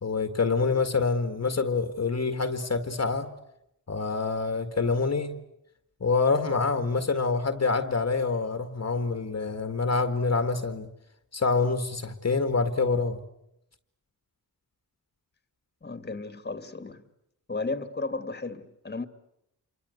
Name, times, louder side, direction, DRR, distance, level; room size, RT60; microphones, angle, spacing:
voice 1, 0.0-3.3 3.9-5.4 6.0-10.9 11.3-13.2, left 4 dB, 45° left, 1.9 m, -26 dB
voice 2, 15.8-17.1 17.5-19.1, left 3 dB, 30° left, 2.2 m, -34 dB
28.0 x 24.5 x 8.1 m
wide cardioid pair, 105°, 37 cm